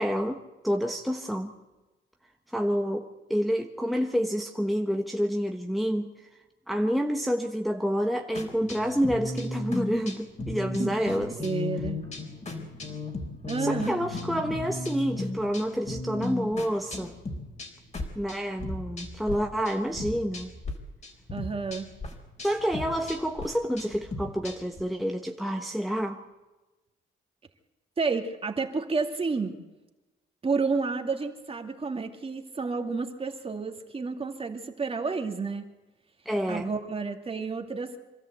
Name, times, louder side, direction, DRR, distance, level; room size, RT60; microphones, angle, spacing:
voice 1, 0.0-1.5 2.5-6.3 6.7-11.3 13.6-17.1 18.1-20.5 22.4-26.2 36.2-36.7, equal, ahead, 3 dB, 1.3 m, -28 dB
sound 1, 8.3-19.4 19.6-20.7 21.0-24.8, left 2 dB, 35° left, 4.1 m, -36 dB
voice 2, 11.3-12.0 13.5-13.9 21.3-21.9 28.0-29.6 30.4-35.7 36.5-38.0, right 4 dB, 30° right, 4 dB, 2.4 m, -30 dB
25.5 x 13.0 x 8.1 m, 1.1 s
cardioid pair, 90°, 20 cm